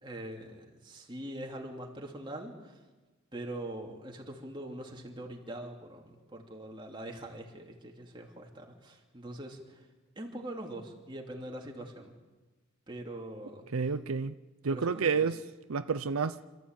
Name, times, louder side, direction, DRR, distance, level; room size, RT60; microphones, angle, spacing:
voice 1, 0.0-2.8 3.3-9.9 10.2-12.1 12.9-13.7 14.7-15.3, right 1 dB, 20° right, 2.7 m, -43 dB
voice 2, 13.7-14.3 14.6-15.4 15.7-16.4, right 5 dB, 85° right, 0.6 m, -29 dB
26.5 x 14.0 x 9.0 m
head